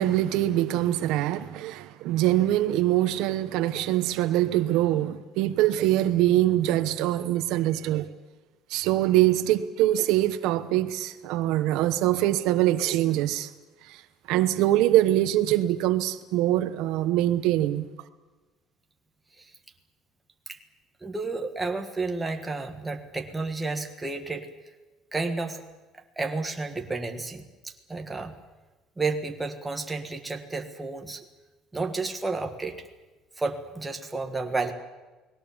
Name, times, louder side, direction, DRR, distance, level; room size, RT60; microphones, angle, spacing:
voice 1, 0.0-8.1 8.7-13.5 13.9-14.0 14.3-17.9, right 14 dB, 65° right, 1.1 m, -23 dB
voice 2, 21.0-24.5 25.1-25.6 26.2-28.4 29.0-31.2 31.7-32.9 33.4-34.7, right 3 dB, 10° right, 1.6 m, -31 dB
29.5 x 19.0 x 7.1 m
cardioid pair, 165°, 0 cm